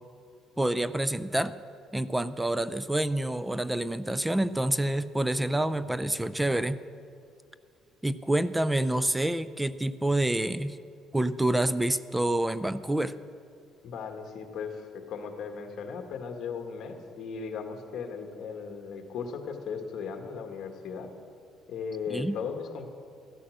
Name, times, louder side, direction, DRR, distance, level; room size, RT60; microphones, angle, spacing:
voice 1, 0.6-1.5 1.9-6.8 8.0-10.8 11.1-13.1 22.1-22.4, right 1 dB, 5° right, 14 dB, 0.4 m, -27 dB
voice 2, 13.8-21.1 21.7-22.9, left 6 dB, 50° left, 5 dB, 1.6 m, -37 dB
14.5 x 12.5 x 6.4 m, 2.4 s
cardioid pair, 145°, 0 cm